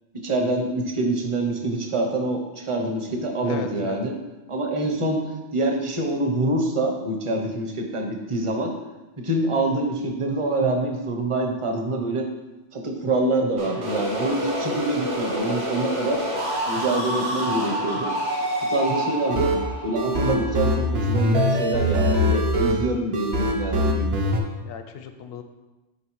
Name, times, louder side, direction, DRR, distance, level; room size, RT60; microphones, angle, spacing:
voice 1, 0.1-4.1 4.5-5.2 5.5-8.7 9.2-12.3 12.7-16.2 16.7-18.1 18.7-19.5 19.8-24.3, right 2 dB, 30° right, 3 dB, 0.7 m, -25 dB
voice 2, 3.4-4.0 24.6-25.4, left 7 dB, 65° left, 7 dB, 0.7 m, -36 dB
sound 1, 13.6-21.3, equal, 80° right, 1.4 m, -28 dB
sound 2, 19.3-24.4, equal, 60° right, 0.9 m, -23 dB
7.0 x 4.6 x 3.1 m, 1.1 s
omnidirectional pair, 1.2 m